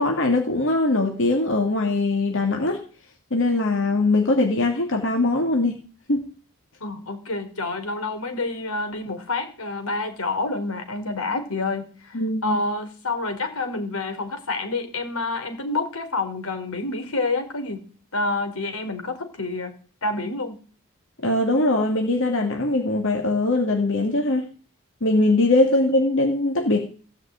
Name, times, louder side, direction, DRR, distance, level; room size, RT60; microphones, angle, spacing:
voice 1, 0.0-2.8 3.3-5.8 6.1-6.3 12.1-12.6 21.2-24.5 25.0-26.8, left 2 dB, 65° left, 2 dB, 2.6 m, -21 dB
voice 2, 6.8-19.7 20.0-20.6, left 3 dB, 85° left, 6 dB, 4.0 m, -28 dB
16.5 x 6.4 x 9.0 m, 0.39 s
head